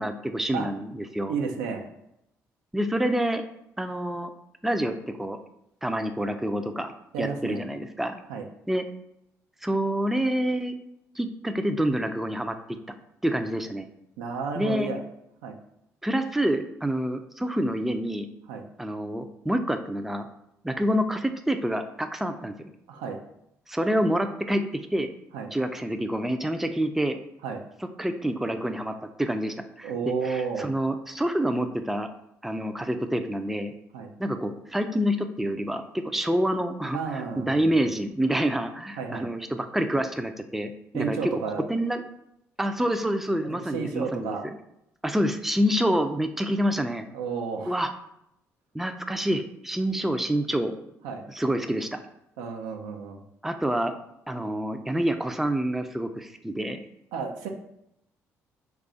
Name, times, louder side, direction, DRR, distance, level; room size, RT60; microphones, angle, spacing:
voice 1, 0.0-1.4 2.7-3.4 3.8-4.3 4.6-5.4 5.8-6.9 7.2-8.2 8.7-8.9 9.6-10.8 11.2-12.8 13.2-13.9 14.6-14.9 16.0-18.3 18.8-20.3 20.6-22.7 23.7-25.1 25.5-27.2 28.0-29.9 30.2-32.1 32.4-33.7 34.2-41.3 41.7-42.0 42.6-44.5 45.0-47.0 47.6-47.9 48.7-50.7 51.3-52.0 53.4-53.9 54.3-56.8, equal, 5° right, 7 dB, 0.3 m, -27 dB
voice 2, 1.3-1.8 7.1-7.6 8.3-8.4 14.2-15.0 15.4-15.6 18.5-18.7 22.9-23.2 25.3-25.5 27.4-27.6 29.8-30.7 33.9-34.1 36.9-37.7 39.0-39.3 40.9-41.7 43.4-44.5 47.1-47.8 51.0-51.3 52.4-53.2 57.1-57.5, right 5 dB, 80° right, 3 dB, 0.4 m, -32 dB
3.2 x 2.4 x 3.8 m, 0.80 s
hypercardioid pair, 50°, 7 cm